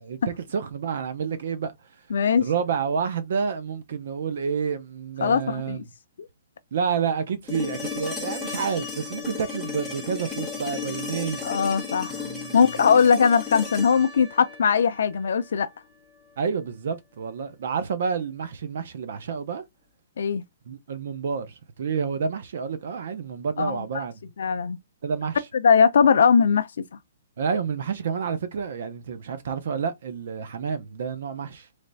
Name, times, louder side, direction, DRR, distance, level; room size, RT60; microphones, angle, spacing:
voice 1, 0.0-1.9 2.4-5.8 6.7-11.5 12.1-12.8 16.4-19.6 20.7-24.2 25.0-25.4 27.4-31.7, right 6 dB, 50° right, 0.6 m, -29 dB
voice 2, 2.1-2.4 5.2-5.8 11.4-15.7 20.2-20.4 23.6-24.0 24.4-24.8 25.6-26.8, left 6 dB, 65° left, 0.4 m, -20 dB
sound 1, 7.5-15.5 17.7-17.8, left 5 dB, ahead, 0.9 m, -34 dB
3.3 x 3.2 x 3.9 m
hypercardioid pair, 175°, 0 cm